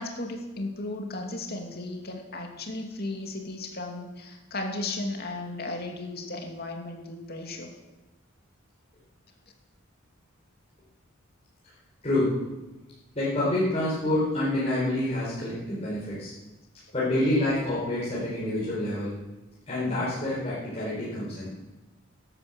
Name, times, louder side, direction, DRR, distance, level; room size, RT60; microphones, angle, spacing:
voice 1, 0.0-7.7, left 2 dB, 50° left, 2 dB, 2.5 m, -35 dB
voice 2, 12.0-12.3 13.1-16.3 16.9-19.1 19.7-21.5, left 1 dB, 30° left, -9 dB, 5.1 m, -27 dB
13.0 x 12.0 x 7.8 m, 1.1 s
head